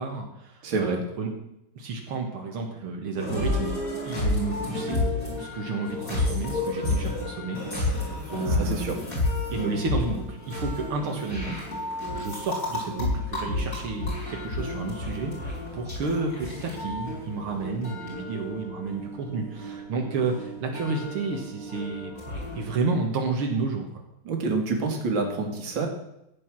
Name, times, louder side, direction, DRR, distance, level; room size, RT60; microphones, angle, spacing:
voice 1, 0.0-1.3 1.8-3.7 4.1-5.0 5.4-9.0 9.5-11.6 12.1-22.1 22.6-24.0, right 3 dB, 85° right, 1 dB, 2.5 m, -31 dB
voice 2, 0.6-1.0 8.5-9.0 24.3-25.9, right 3 dB, 65° right, 3 dB, 2.8 m, -27 dB
sound 1, 3.2-22.6, left 2 dB, 40° left, 4.9 m, -31 dB
15.0 x 8.7 x 6.1 m, 0.84 s
omnidirectional pair, 2.3 m